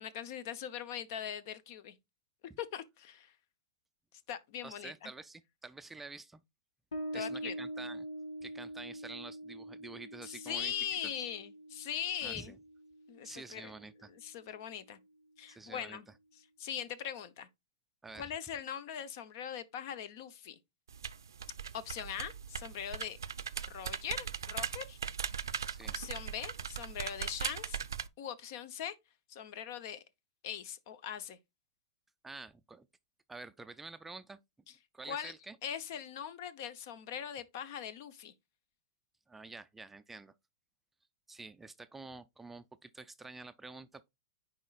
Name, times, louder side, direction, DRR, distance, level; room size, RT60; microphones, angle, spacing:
voice 1, 0.0-1.9 2.6-3.3 4.3-5.1 7.1-7.5 10.2-12.5 13.1-13.7 14.1-15.0 15.4-16.1 16.6-17.5 18.1-20.6 21.7-23.2 23.7-25.0 25.3-25.6 25.9-27.8 28.2-28.9 29.3-30.0 30.4-31.4 35.0-35.3 35.6-38.3, left 9 dB, 55° left, 0.8 m, -41 dB
voice 2, 4.6-6.4 7.1-8.1 8.4-10.7 11.0-11.1 12.2-12.6 13.2-14.1 15.5-16.0 18.0-18.3 25.7-26.0 32.2-32.9 33.3-34.4 34.9-35.6 39.3-40.3 41.3-44.1, right 3 dB, 10° right, 0.4 m, -48 dB
Bass guitar, 6.9-14.1, right 1 dB, 85° left, 1.5 m, -44 dB
sound 1, 20.9-28.1, right 7 dB, 85° right, 0.5 m, -39 dB
10.0 x 4.4 x 2.4 m
hypercardioid pair, 115°, 2 cm